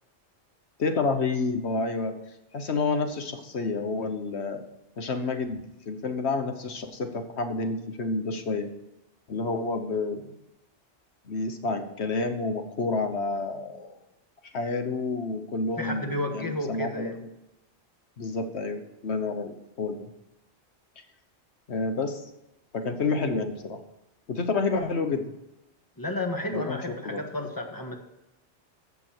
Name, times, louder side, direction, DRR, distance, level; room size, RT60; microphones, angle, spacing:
voice 1, 0.8-2.1 2.5-4.6 5.0-8.7 9.3-10.3 11.3-13.9 14.5-17.2 18.2-20.1 21.7-22.2 22.7-23.8 24.3-25.2 26.5-27.2, left 3 dB, 70° left, 7 dB, 1.4 m, -29 dB
voice 2, 15.8-17.2 26.0-28.0, left 1 dB, 20° left, 3 dB, 1.5 m, -32 dB
15.5 x 6.2 x 4.6 m, 0.91 s
omnidirectional pair, 1.2 m